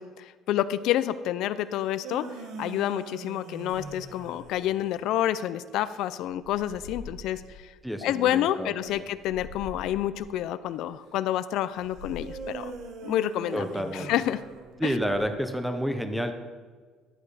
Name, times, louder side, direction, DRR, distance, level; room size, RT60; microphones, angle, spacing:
voice 1, 0.0-2.3 2.6-7.7 8.0-12.7 13.0-13.6 13.9-14.4 14.8-15.0, left 12 dB, 65° left, 13 dB, 0.4 m, -28 dB
sound 1, 1.8-5.0 12.2-15.1, right 4 dB, 60° right, 1.4 m, -42 dB
sound 2, 3.7-4.9 5.7-7.6 8.1-10.3 11.0-11.1 11.7-12.8 13.4-13.7 14.1-15.5, left 2 dB, 80° right, 2.6 m, -47 dB
voice 2, 7.8-9.0 13.5-14.1 14.8-16.3, equal, ahead, 6 dB, 0.7 m, -29 dB
11.5 x 8.9 x 4.8 m, 1.5 s
cardioid pair, 160°, 0 cm